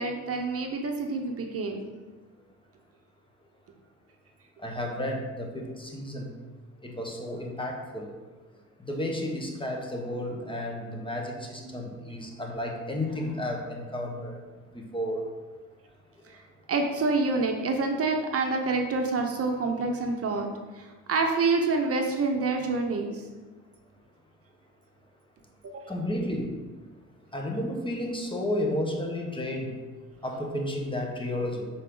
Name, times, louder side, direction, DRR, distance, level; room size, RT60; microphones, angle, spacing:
voice 1, 0.0-1.9 11.6-11.8 16.2-16.4 16.7-23.2 25.6-25.9, right 3 dB, 50° right, 3 dB, 0.8 m, -27 dB
voice 2, 4.6-6.3 6.8-8.1 8.8-14.4 14.7-15.3 25.9-26.5 27.3-29.8 30.2-31.7, left 1 dB, 15° left, 0 dB, 1.2 m, -32 dB
6.4 x 4.2 x 3.8 m, 1.3 s
cardioid pair, 90°, 30 cm